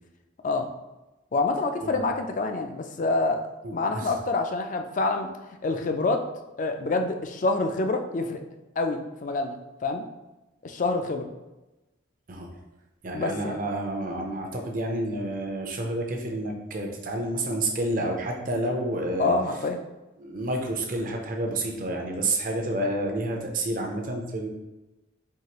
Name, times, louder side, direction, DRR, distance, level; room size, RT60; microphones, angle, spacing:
voice 1, 1.3-5.3 5.6-6.3 6.6-8.4 8.8-10.0 10.6-11.3 13.1-13.6 19.2-19.8, left 3 dB, 40° left, 6 dB, 0.3 m, -27 dB
voice 2, 3.6-4.1 12.3-12.5 13.0-19.4 20.2-24.5, right 1 dB, 40° right, 2 dB, 0.6 m, -29 dB
4.6 x 2.8 x 2.9 m, 1.0 s
head